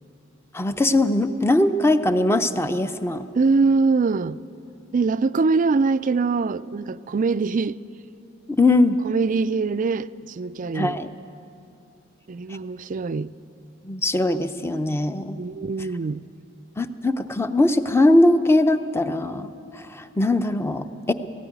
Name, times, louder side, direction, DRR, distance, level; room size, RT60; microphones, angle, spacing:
voice 1, 0.5-3.2 8.5-9.0 10.7-11.1 13.8-15.4 16.8-21.1, left 2 dB, 15° left, 0.7 m, -21 dB
voice 2, 3.3-4.4 4.9-7.8 9.0-11.0 12.3-13.3 15.4-16.2, right 4 dB, 45° right, 0.4 m, -23 dB
18.0 x 16.5 x 9.4 m
head